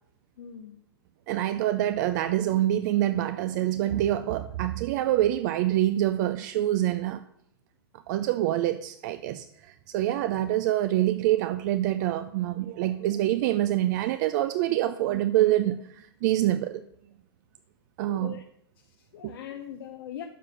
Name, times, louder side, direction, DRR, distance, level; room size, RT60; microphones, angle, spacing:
voice 1, 0.4-0.8 18.1-18.4 18.8-20.2, left 10 dB, 60° left, 5 dB, 0.9 m, -41 dB
voice 2, 1.3-7.2 8.1-16.8 18.0-18.4 19.2-19.3, right 13 dB, 45° right, 10 dB, 0.5 m, -26 dB
12.0 x 4.2 x 6.4 m, 0.72 s
hypercardioid pair, 130°, 14 cm